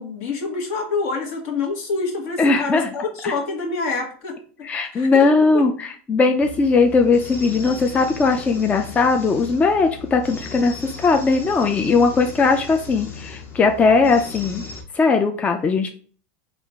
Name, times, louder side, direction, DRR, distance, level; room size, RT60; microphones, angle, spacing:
voice 1, 0.0-4.7 4.9-5.6, left 4 dB, 60° left, 1 dB, 1.3 m, -27 dB
voice 2, 2.4-2.9 3.2-3.3 4.6-14.6 14.9-15.9, left 4 dB, 20° left, 4 dB, 0.4 m, -19 dB
sound 1, 6.4-14.8, left 4 dB, 35° left, 0.9 m, -37 dB
3.7 x 2.4 x 3.4 m, 0.44 s
supercardioid pair, 120°, 7 cm